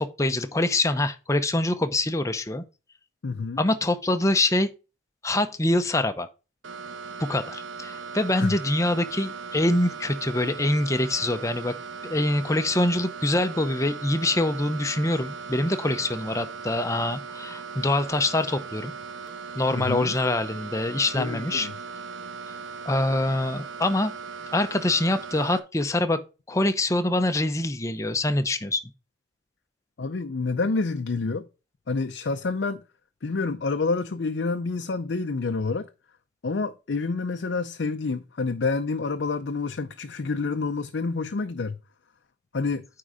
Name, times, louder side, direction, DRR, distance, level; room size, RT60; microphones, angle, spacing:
voice 1, 0.0-2.6 3.6-4.7 5.2-6.3 7.3-11.7 12.0-18.9 19.6-21.7 22.8-24.1 24.5-26.2 26.5-28.8, left 1 dB, 15° left, 0.7 m, -25 dB
voice 2, 3.2-3.6 8.4-8.6 19.7-20.1 21.2-21.7 30.0-31.5 31.9-32.8 33.2-35.9 36.4-41.8 42.5-42.9, left 4 dB, 60° left, 0.5 m, -28 dB
sound 1, 6.6-25.6, right 5 dB, 80° right, 1.0 m, -38 dB
9.4 x 3.8 x 4.9 m
head